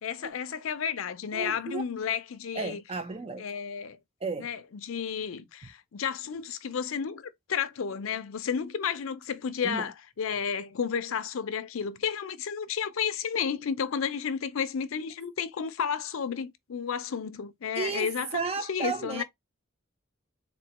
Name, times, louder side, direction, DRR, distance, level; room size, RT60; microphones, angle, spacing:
voice 1, 0.0-2.8 3.4-4.0 4.4-19.2, left 7 dB, 80° left, 0.5 m, -32 dB
voice 2, 1.3-1.8 2.5-3.5 4.2-4.5 9.6-9.9 17.8-19.2, right 5 dB, 30° right, 0.4 m, -33 dB
3.8 x 2.1 x 2.9 m
head